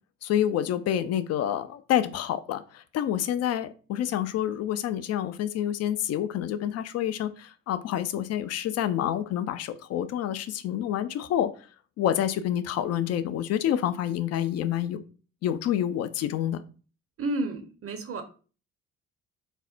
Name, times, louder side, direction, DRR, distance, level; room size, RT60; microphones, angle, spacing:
voice 1, 0.2-11.5 12.0-15.0 15.4-16.6, left 11 dB, 40° left, 12 dB, 0.4 m, -28 dB
voice 2, 17.2-18.2, right 2 dB, 35° right, 6 dB, 0.7 m, -31 dB
4.3 x 2.0 x 2.4 m, 0.37 s
hypercardioid pair, 50°, 41 cm